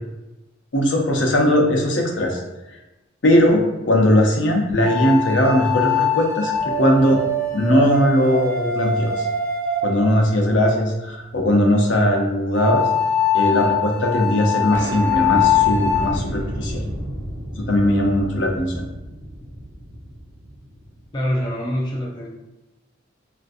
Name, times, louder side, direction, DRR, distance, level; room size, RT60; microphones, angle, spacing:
voice 1, 0.7-2.4 3.2-6.5 6.8-7.2 7.5-9.1 9.8-12.8 13.3-16.8 17.6-18.8, equal, 65° left, 1 dB, 0.6 m, -19 dB
sound 1, 4.8-10.7 12.6-16.1, left 5 dB, 85° right, 1.2 m, -22 dB
sound 2, 6.5-9.1 9.6-9.7 11.2-11.5 11.8-13.2 13.5-13.6 13.8-13.9 14.2-14.3 14.7-21.4, equal, 45° right, 0.6 m, -33 dB
voice 2, 21.1-22.3, equal, 25° left, -2 dB, 0.3 m, -24 dB
3.7 x 2.5 x 2.5 m, 1.0 s
head